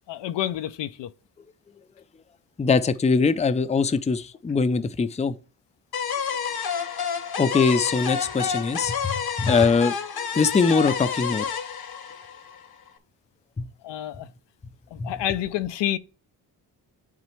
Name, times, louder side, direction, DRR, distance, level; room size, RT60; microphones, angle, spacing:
voice 1, 0.1-1.1 13.8-14.3 14.9-16.0, left 12 dB, 75° left, 0.6 m, -28 dB
voice 2, 2.6-5.4 7.4-11.5 13.6-13.7 15.0-15.1, left 4 dB, 15° left, 0.5 m, -22 dB
sound 1, 5.9-12.9, left 7 dB, 55° left, 1.1 m, -29 dB
9.6 x 4.1 x 3.2 m
cardioid pair, 65°, 43 cm